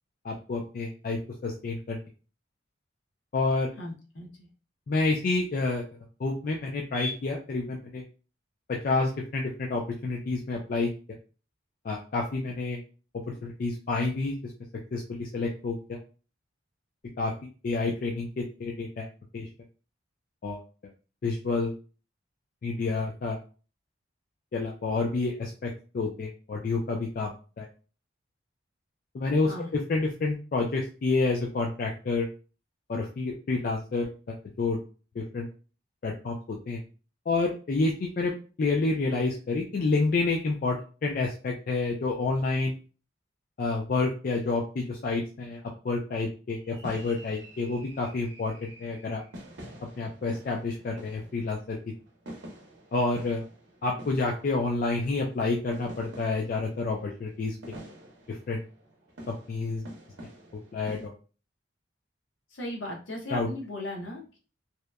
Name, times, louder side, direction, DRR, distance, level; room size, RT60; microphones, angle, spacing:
voice 1, 0.2-2.0 3.3-3.7 4.9-5.8 6.2-8.0 8.7-10.9 11.8-12.8 13.3-14.4 14.9-16.0 17.2-19.1 19.3-19.5 20.4-20.6 21.2-21.7 22.6-23.4 24.5-27.7 29.1-32.3 32.9-34.8 35.2-35.5 36.0-36.8 37.3-42.7 43.6-49.2 50.0-51.8 52.9-53.4 53.8-57.8 58.3-58.6 59.3-59.9 60.7-61.1 63.3-63.5, left 3 dB, 45° left, 0 dB, 0.3 m, -29 dB
voice 2, 3.8-4.5 29.4-29.7 62.5-64.4, left 1 dB, 70° left, 0 dB, 0.8 m, -37 dB
sound 1, 46.6-61.1, right 1 dB, 65° right, 0.7 m, -48 dB
2.8 x 2.1 x 2.3 m, 0.36 s
head